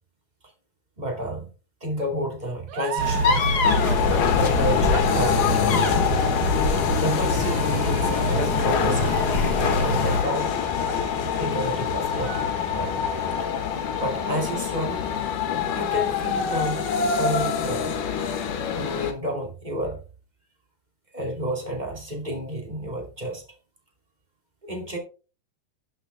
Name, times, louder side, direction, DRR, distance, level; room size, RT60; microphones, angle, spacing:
voice 1, 1.0-1.5 1.8-3.7 4.4-6.0 7.0-9.2 9.6-10.5 11.4-12.4 12.7-13.0 13.4-13.5 14.0-15.1 15.6-16.8 17.2-18.0 18.7-20.0 21.1-23.4 24.6-25.0, equal, 15° right, 1 dB, 2.2 m, -30 dB
sound 1, 2.7-11.7 12.1-13.1, right 9 dB, 85° right, 2.7 m, -38 dB
sound 2, 3.0-10.3, left 2 dB, 55° left, 1.1 m, -24 dB
sound 3, 3.6-19.1, left 7 dB, 80° left, 3.0 m, -25 dB
11.5 x 6.8 x 3.4 m, 0.34 s
omnidirectional pair, 3.7 m